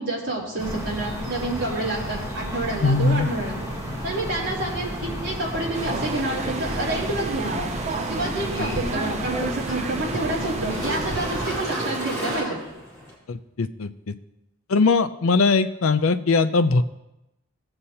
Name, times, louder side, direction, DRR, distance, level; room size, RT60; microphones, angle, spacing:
voice 1, 0.0-3.6 4.0-7.6 8.1-12.6, right 2 dB, 60° right, -7 dB, 3.5 m, -28 dB
sound 1, 0.6-11.5, equal, 15° right, 1.8 m, -33 dB
voice 2, 2.8-3.3 8.6-8.7 13.3-14.1 14.7-16.8, left 4 dB, 70° left, 11 dB, 0.5 m, -20 dB
sound 2, 5.7-12.4, right 3 dB, 30° right, 0.5 m, -32 dB
sound 3, 7.4-13.1, left 1 dB, 15° left, 3.6 m, -35 dB
18.5 x 7.8 x 2.8 m, 0.93 s
head